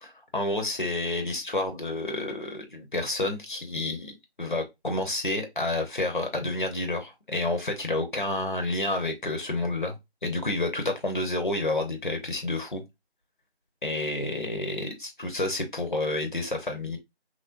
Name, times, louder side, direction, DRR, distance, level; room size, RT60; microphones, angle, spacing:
voice 1, 0.0-10.0 10.2-12.8 13.8-17.0, left 2 dB, 50° left, 0.7 m, -29 dB
3.2 x 2.6 x 2.4 m
figure-of-eight pair, 175°, 33 cm